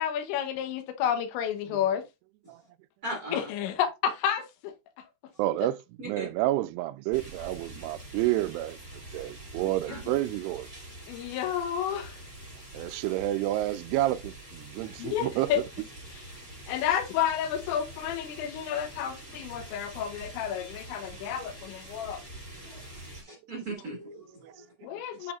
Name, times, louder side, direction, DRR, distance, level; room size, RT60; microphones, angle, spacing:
voice 1, 0.0-2.0 3.3-4.7 11.1-12.2 15.0-15.6 16.7-22.2 24.8-25.3, left 9 dB, 85° left, 3.3 m, -30 dB
voice 2, 3.0-3.5 6.0-6.3 9.1-9.2 9.8-10.0 12.7-13.0 14.8-14.9 22.6-22.8 23.2-24.9, right 1 dB, 60° right, 0.9 m, -39 dB
voice 3, 5.4-10.7 12.7-15.6 21.2-21.3 24.4-24.5 25.2-25.3, right 15 dB, 85° right, 2.4 m, -30 dB
sound 1, 7.1-23.2, right 1 dB, 5° left, 4.1 m, -45 dB
8.6 x 5.9 x 2.4 m
omnidirectional pair, 5.2 m